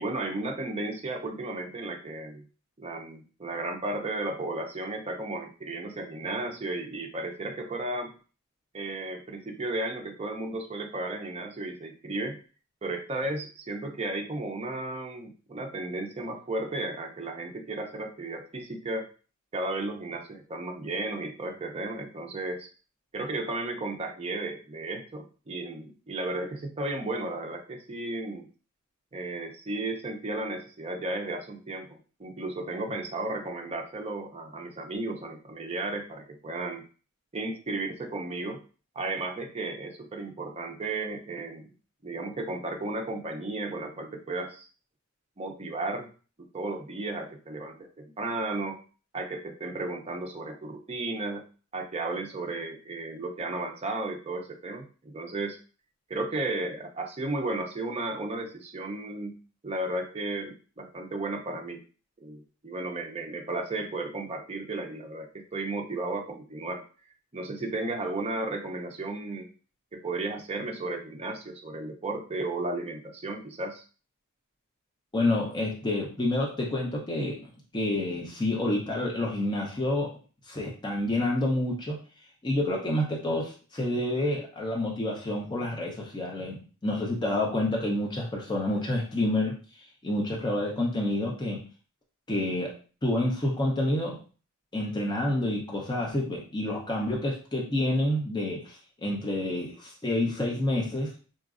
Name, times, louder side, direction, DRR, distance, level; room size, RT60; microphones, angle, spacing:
voice 1, 0.0-2.4 2.8-8.1 8.7-12.4 12.8-19.1 19.5-22.7 23.1-28.5 29.1-36.8 37.3-38.6 39.0-41.7 42.0-44.7 45.4-46.1 46.5-48.8 49.1-51.4 51.7-55.6 56.1-61.8 62.2-66.8 67.3-69.5 69.9-73.8, right 2 dB, 30° right, 2 dB, 0.5 m, -34 dB
voice 2, 75.1-80.1 80.5-82.0 82.4-89.6 90.0-91.6 92.3-92.7 93.0-94.2 94.7-101.1, left 1 dB, 20° left, -2 dB, 0.6 m, -28 dB
3.9 x 2.5 x 2.4 m, 0.37 s
head